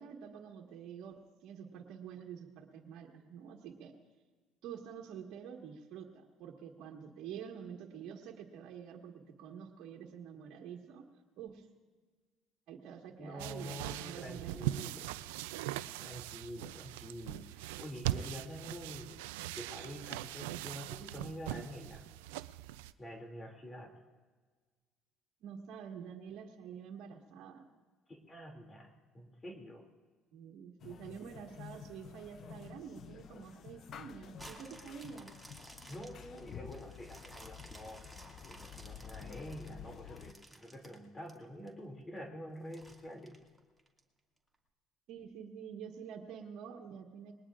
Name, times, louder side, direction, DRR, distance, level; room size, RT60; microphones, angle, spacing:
voice 1, 0.0-3.9 4.6-11.0 11.4-11.7 12.7-15.0 25.4-27.6 30.3-35.3 45.1-47.3, right 7 dB, 70° right, 0 dB, 1.6 m, -48 dB
voice 2, 13.2-15.1 16.0-19.2 19.5-22.0 23.0-23.9 28.1-29.8 35.9-38.2 38.5-43.4, equal, 25° left, 3 dB, 2.6 m, -47 dB
sound 1, 13.4-22.9, right 14 dB, 90° right, 0.4 m, -41 dB
sound 2, 30.8-40.3, left 8 dB, 55° left, 0.6 m, -51 dB
sound 3, 34.4-41.7 42.2-42.3 42.7-44.0 44.5-44.6, right 1 dB, 5° right, 2.3 m, -55 dB
21.0 x 19.5 x 2.5 m, 1.4 s
supercardioid pair, 75°, 0 cm